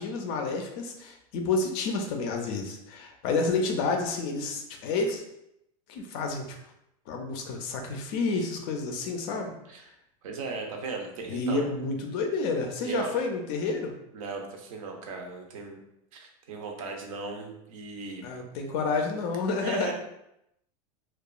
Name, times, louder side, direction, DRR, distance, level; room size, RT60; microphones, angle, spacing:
voice 1, 0.0-5.2 5.9-6.5 7.1-9.5 11.3-13.9 18.2-19.9, left 3 dB, 45° left, 3 dB, 0.4 m, -29 dB
voice 2, 10.2-11.7 12.8-13.2 14.1-15.8 16.1-18.3 19.6-19.9, right 4 dB, 70° right, 2 dB, 0.6 m, -37 dB
2.8 x 2.2 x 2.3 m, 0.81 s
supercardioid pair, 165°, 18 cm